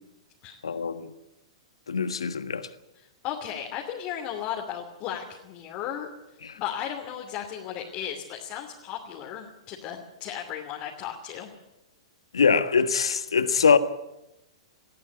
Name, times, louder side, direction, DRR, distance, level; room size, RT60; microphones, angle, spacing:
voice 1, 0.6-1.1 1.9-2.7 6.4-6.6 12.3-13.8, left 6 dB, 75° left, 1.5 m, -23 dB
voice 2, 2.9-6.1 6.6-11.5, left 9 dB, 35° left, 2.9 m, -35 dB
20.5 x 15.0 x 9.5 m
figure-of-eight pair, 105°, 3 cm